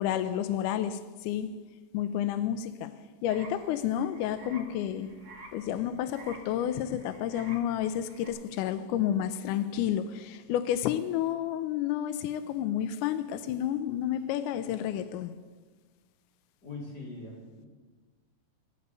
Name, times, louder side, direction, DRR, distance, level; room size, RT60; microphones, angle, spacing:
voice 1, 0.0-1.5 1.9-2.9 3.2-5.1 5.5-15.3, left 10 dB, 85° left, 10 dB, 1.8 m, -30 dB
sound 1, 3.3-8.3, right 3 dB, 70° right, 0.7 m, -51 dB
voice 2, 16.6-17.7, left 2 dB, 35° left, -1 dB, 2.3 m, -42 dB
15.0 x 5.4 x 8.1 m, 1.4 s
omnidirectional pair, 4.1 m